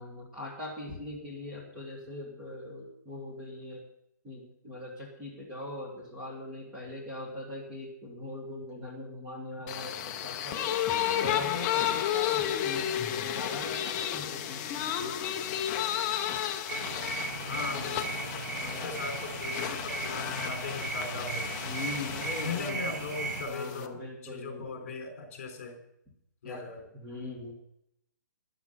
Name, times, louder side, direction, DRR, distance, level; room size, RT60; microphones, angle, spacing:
voice 1, 0.0-3.8 4.2-10.8 11.2-15.6 18.6-19.1 21.6-22.9 23.5-24.9 26.4-26.6 26.9-27.5, left 1 dB, 10° right, -4 dB, 1.9 m, -41 dB
sound 1, 9.7-23.9, left 11 dB, 10° left, 0.4 m, -33 dB
sound 2, 16.7-23.4, right 3 dB, 65° right, 6.3 m, -36 dB
voice 2, 17.5-21.6 22.4-25.8 26.4-26.8, left 4 dB, 40° left, 3 dB, 3.9 m, -39 dB
13.0 x 10.5 x 5.7 m, 0.76 s
hypercardioid pair, 175°, 10 cm